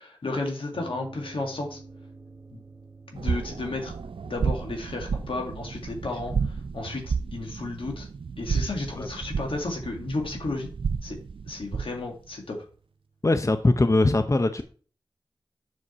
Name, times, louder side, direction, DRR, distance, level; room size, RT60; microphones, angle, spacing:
voice 1, 0.0-1.8 2.5-2.6 3.1-3.9 4.2-8.1 8.4-10.7 11.0-11.2 11.5-12.7, left 2 dB, 85° left, 2 dB, 2.0 m, -33 dB
sound 1, 0.7-13.7, right 3 dB, 45° right, 2.0 m, -51 dB
sound 2, 3.2-12.1, right 5 dB, 80° right, 0.4 m, -32 dB
voice 2, 13.2-14.6, left 2 dB, 35° left, 9 dB, 0.7 m, -21 dB
7.4 x 6.3 x 4.2 m, 0.41 s
cardioid pair, 45°, 9 cm